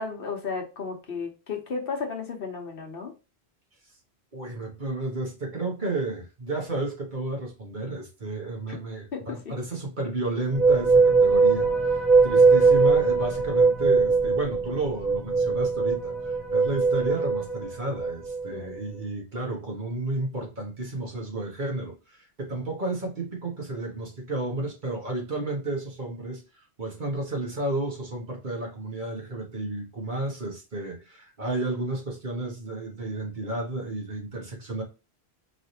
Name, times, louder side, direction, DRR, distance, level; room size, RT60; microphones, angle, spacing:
voice 1, 0.0-3.1 8.7-8.8 9.1-9.6 18.5-18.7, left 5 dB, 60° left, 1.1 m, -34 dB
voice 2, 4.3-16.1 16.5-26.4 26.8-34.8, right 2 dB, 45° right, 1.4 m, -32 dB
sound 1, 10.5-18.6, right 4 dB, ahead, 1.0 m, -21 dB
4.8 x 3.2 x 2.8 m
omnidirectional pair, 1.1 m